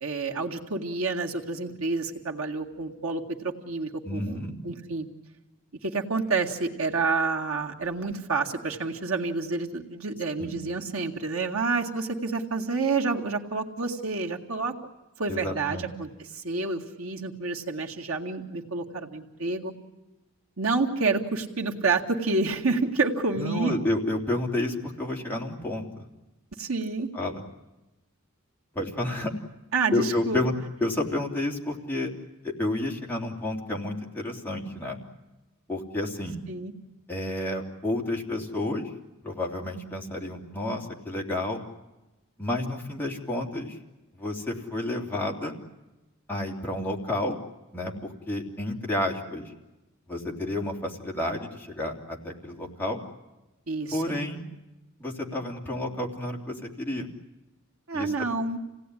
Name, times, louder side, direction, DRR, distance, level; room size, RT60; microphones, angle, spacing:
voice 1, 0.0-5.1 5.8-14.7 15.2-19.7 20.6-23.7 26.6-27.1 29.7-30.4 36.5-36.7 53.7-54.1 57.9-58.6, right 3 dB, 75° right, 1 dB, 2.1 m, -29 dB
voice 2, 4.0-4.5 10.4-10.6 15.3-15.9 23.3-26.0 27.1-27.4 28.7-29.3 29.9-30.5 30.8-32.1 32.4-35.0 35.7-36.4 37.1-38.9 39.2-41.6 42.4-43.8 44.2-45.5 46.3-47.4 47.7-49.5 50.1-53.0 53.9-54.4 55.0-57.1 57.9-58.3, left 1 dB, 10° left, -2 dB, 3.3 m, -30 dB
28.0 x 18.0 x 10.0 m, 1.0 s
head